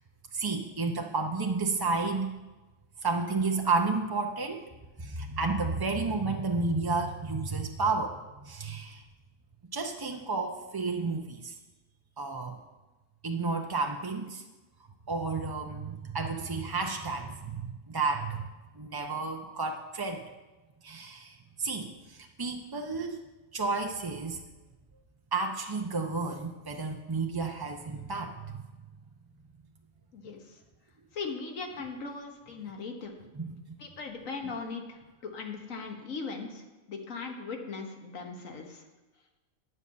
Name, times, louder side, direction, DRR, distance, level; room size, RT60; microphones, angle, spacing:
voice 1, 0.3-2.4 3.0-4.7 5.0-9.0 9.7-11.6 12.2-12.5 13.2-14.4 15.1-18.5 18.7-20.2 20.8-23.2 23.5-24.4 25.3-28.6 33.3-33.6 34.4-34.5, right 3 dB, 35° right, 3 dB, 0.4 m, -31 dB
voice 2, 31.1-33.1 33.8-36.6 36.9-38.8, left 4 dB, 80° left, 3 dB, 1.6 m, -39 dB
9.9 x 5.5 x 8.3 m, 1.1 s
omnidirectional pair, 1.4 m